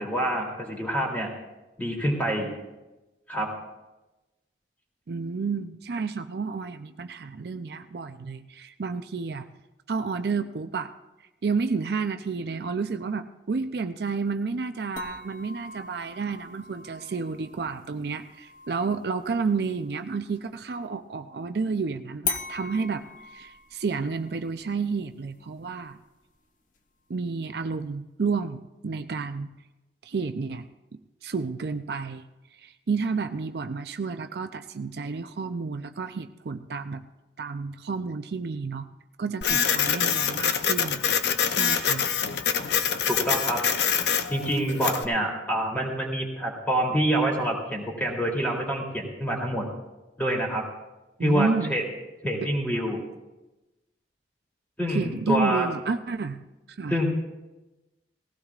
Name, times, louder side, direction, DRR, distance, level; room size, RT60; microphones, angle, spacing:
voice 1, 0.0-1.3 1.8-2.5 3.3-3.5 43.1-43.6 44.3-49.7 50.2-50.6 51.2-51.8 52.2-53.0 54.8-55.7 56.9-57.1, equal, 10° left, -2 dB, 2.9 m, -26 dB
voice 2, 5.1-9.5 9.9-10.9 11.4-26.0 27.1-29.5 30.0-30.7 31.2-32.2 32.6-37.0 37.4-38.9 39.2-41.0 41.5-42.1 51.2-51.8 54.9-56.4 56.7-57.0, right 4 dB, 60° right, 8 dB, 0.5 m, -30 dB
sound 1, 15.0-20.5 22.2-27.2, left 5 dB, 45° left, 1.0 m, -40 dB
Printer, 39.4-45.0, left 7 dB, 70° left, 0.6 m, -25 dB
19.0 x 16.0 x 2.4 m, 1.0 s
head